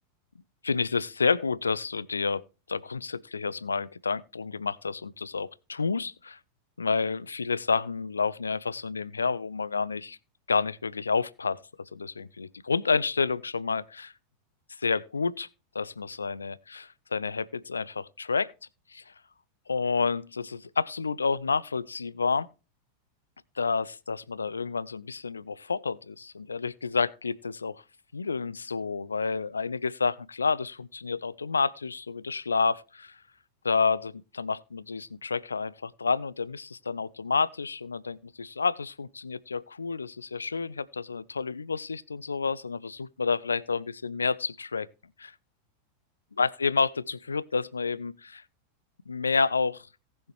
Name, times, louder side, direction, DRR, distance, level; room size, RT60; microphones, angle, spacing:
voice 1, 0.6-2.4 2.7-6.4 6.8-10.2 10.5-14.1 14.8-15.5 15.7-18.5 18.9-19.1 19.7-22.5 23.6-27.8 28.1-33.2 33.6-44.9 45.2-45.3 46.4-48.4 49.1-49.9, left 4 dB, 75° left, 0.4 m, -29 dB
18.0 x 6.4 x 2.9 m
figure-of-eight pair, 90°, 0 cm